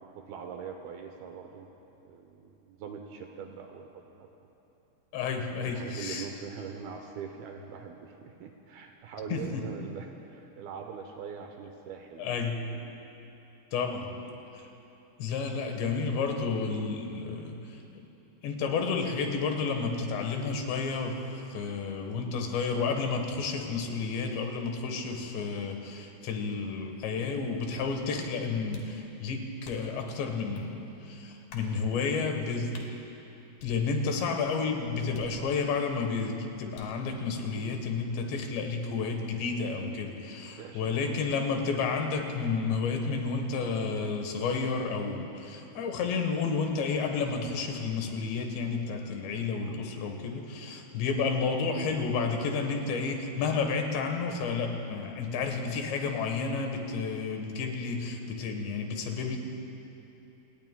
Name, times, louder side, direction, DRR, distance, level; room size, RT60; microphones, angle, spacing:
voice 1, 0.0-1.7 2.0-4.3 5.7-12.4 12.7-13.1 14.3-14.7 40.5-41.2 57.9-58.0, right 6 dB, 75° right, 4 dB, 2.4 m, -43 dB
voice 2, 5.1-6.3 9.3-9.4 12.2-12.6 13.7-14.1 14.5-14.7 15.2-18.1 18.4-21.2 21.5-32.9 33.6-59.4, left 4 dB, 85° left, 4 dB, 3.6 m, -31 dB
sound 1, 28.7-29.0 29.6-30.0 30.5-30.7 31.5-31.8 32.7-32.9 33.6-34.2 35.1-35.8 36.7-37.1, left 4 dB, 60° left, 2.8 m, -51 dB
29.0 x 18.0 x 2.2 m, 3.0 s
omnidirectional pair, 5.0 m